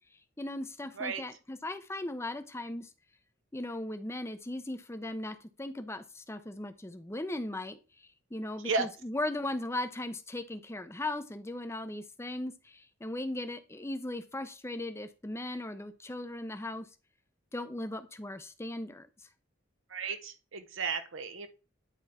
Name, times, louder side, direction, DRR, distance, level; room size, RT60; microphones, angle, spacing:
voice 1, 0.4-2.9 3.5-7.8 8.3-16.9 17.5-19.1, left 1 dB, 15° left, 9 dB, 0.7 m, -38 dB
voice 2, 19.9-21.5, right 4 dB, 80° right, 9 dB, 0.8 m, -33 dB
9.9 x 3.6 x 4.2 m, 0.33 s
head